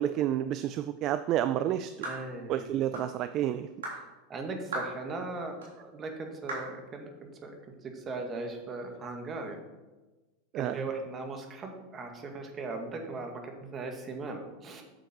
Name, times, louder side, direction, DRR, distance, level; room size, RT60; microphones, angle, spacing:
voice 1, 0.0-1.9 2.5-3.7 10.5-10.9, right 11 dB, 45° right, 12 dB, 0.4 m, -30 dB
voice 2, 2.0-2.7 4.3-7.1 7.4-7.6 7.8-9.6 10.6-14.8, right 3 dB, 30° right, 4 dB, 1.9 m, -38 dB
sound 1, 2.0-2.3 2.9-3.1 3.8-4.0 4.7-5.0 5.6-5.7 6.5-6.7, right 2 dB, 90° right, 3.6 m, -36 dB
9.2 x 7.1 x 4.5 m, 1.2 s
hypercardioid pair, 110°, 0 cm